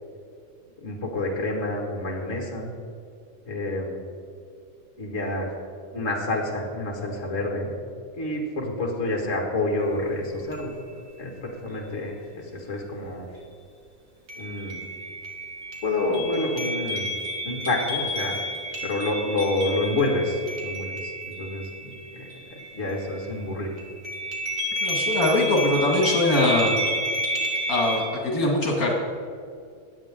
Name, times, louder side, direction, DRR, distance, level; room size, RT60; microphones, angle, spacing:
voice 1, 0.8-2.7 3.5-4.0 5.0-5.5 5.9-7.7 8.2-10.7 11.2-13.3 14.4-14.8 15.8-17.1 17.4-18.3 18.8-22.2 22.5-23.7, left 2 dB, 55° left, 0 dB, 2.4 m, -28 dB
sound 1, 9.8-9.9 10.5-11.1 14.3-23.4 23.8-28.0, equal, 65° right, 2.5 m, -31 dB
voice 2, 24.8-26.7 27.7-28.9, left 2 dB, 75° left, -1 dB, 2.5 m, -22 dB
23.0 x 8.9 x 3.7 m, 2.4 s
omnidirectional pair, 1.5 m